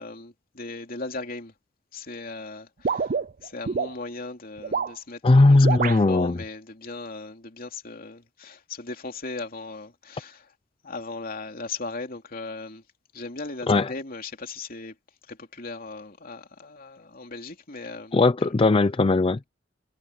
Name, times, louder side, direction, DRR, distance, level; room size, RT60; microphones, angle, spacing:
voice 1, 0.0-1.5 1.9-3.1 3.4-10.5 10.8-12.8 13.1-14.9 15.3-18.1 18.4-18.5, left 3 dB, 50° left, 3.0 m, -37 dB
sound 1, 2.8-3.9 4.6-5.0 5.6-6.0, right 5 dB, 45° right, 0.5 m, -27 dB
voice 2, 5.2-6.4 13.7-13.9 18.1-19.5, left 2 dB, 30° left, 0.4 m, -18 dB
head